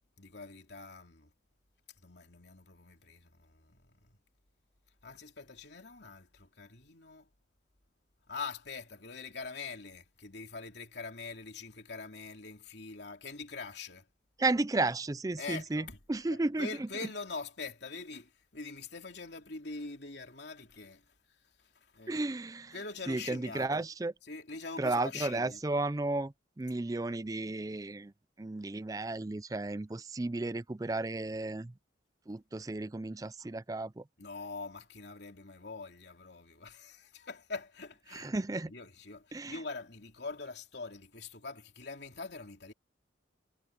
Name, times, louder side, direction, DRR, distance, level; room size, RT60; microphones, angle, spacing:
voice 1, 0.2-1.3 2.0-4.2 5.0-7.3 8.3-14.1 15.4-16.0 16.3-21.1 21.6-22.3 22.7-23.9 24.2-25.6 34.2-38.4 38.6-42.7, left 4 dB, 60° left, 3.1 m, -44 dB
voice 2, 14.4-16.9 22.1-22.7 23.1-24.1 24.8-28.1 28.4-31.7 32.3-34.0 38.1-38.7 39.3-39.6, right 2 dB, 20° right, 0.4 m, -33 dB
head